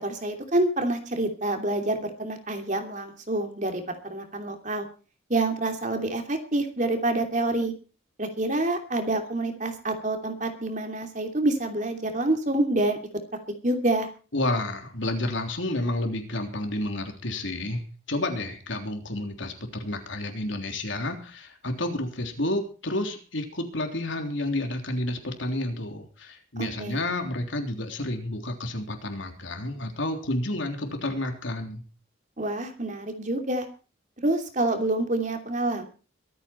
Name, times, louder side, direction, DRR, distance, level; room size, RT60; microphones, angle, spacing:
voice 1, 0.0-4.8 5.3-7.7 8.2-13.0 13.6-14.1 26.6-27.0 32.4-33.7 34.2-35.9, right 2 dB, 40° right, 5 dB, 2.9 m, -27 dB
voice 2, 14.3-31.8, left 1 dB, 75° left, 4 dB, 3.5 m, -30 dB
23.0 x 9.2 x 4.5 m, 0.36 s
head